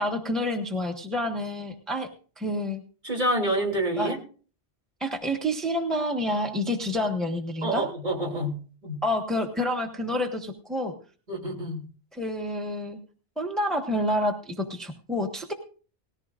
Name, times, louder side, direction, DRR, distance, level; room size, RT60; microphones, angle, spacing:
voice 1, 0.0-2.1 2.4-2.8 4.0-4.1 5.0-7.9 9.0-10.9 12.1-13.0 13.4-15.5, left 1 dB, ahead, 3 dB, 1.2 m, -28 dB
voice 2, 3.0-4.2 7.6-9.0 11.3-11.8, right 1 dB, 45° right, -1 dB, 3.1 m, -28 dB
18.5 x 14.5 x 2.5 m, 0.41 s
omnidirectional pair, 1.1 m